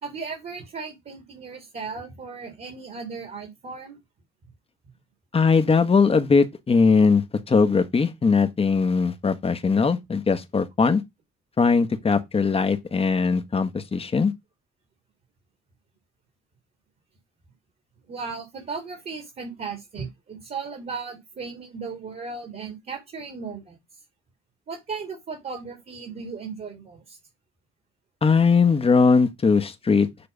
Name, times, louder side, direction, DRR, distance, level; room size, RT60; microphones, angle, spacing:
voice 1, 0.0-4.0 18.1-23.8 24.7-27.2, right 5 dB, 50° right, 2.7 m, -36 dB
voice 2, 5.3-11.0 11.6-14.3 28.2-30.1, left 5 dB, 30° left, 1.1 m, -20 dB
7.0 x 3.3 x 5.3 m
cardioid pair, 90°, 20 cm